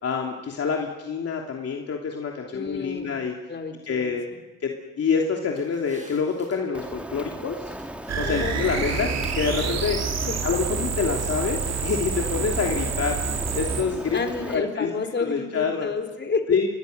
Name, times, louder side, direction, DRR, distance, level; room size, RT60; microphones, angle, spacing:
voice 1, 0.0-3.3 3.8-4.2 4.6-7.7 8.2-9.1 9.3-10.0 10.4-13.2 13.5-14.2 14.5-14.9 15.2-15.9 16.5-16.7, left 5 dB, 55° left, 1 dB, 3.0 m, -27 dB
voice 2, 2.5-3.1 3.5-4.1 8.2-8.9 10.3-10.4 14.1-16.5, left 4 dB, 35° left, 5 dB, 4.0 m, -30 dB
sound 1, 5.4-6.6 7.7-8.2 8.5-10.0, right 2 dB, 25° right, 7.4 m, -44 dB
Rain, 6.7-14.6, right 1 dB, 5° right, 2.3 m, -38 dB
sound 2, 8.1-13.8, right 5 dB, 60° right, 3.4 m, -28 dB
27.5 x 22.0 x 6.7 m, 1.1 s
cardioid pair, 90°, 30 cm